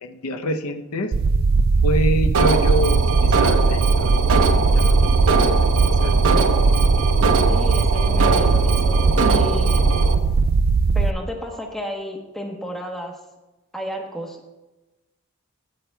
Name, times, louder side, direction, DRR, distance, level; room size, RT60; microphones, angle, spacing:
voice 1, 0.0-1.1 1.8-4.0 4.7-4.8 5.3-5.5 6.0-6.1, equal, 80° left, 6 dB, 0.7 m, -25 dB
sound 1, 1.1-11.1, right 4 dB, 45° right, 0.3 m, -18 dB
Alarm, 2.3-10.1, right 4 dB, 80° right, 0.8 m, -22 dB
voice 2, 7.5-9.9 10.9-13.2 13.7-14.4, equal, ahead, 1 dB, 0.9 m, -32 dB
14.5 x 8.4 x 2.2 m, 1.1 s
head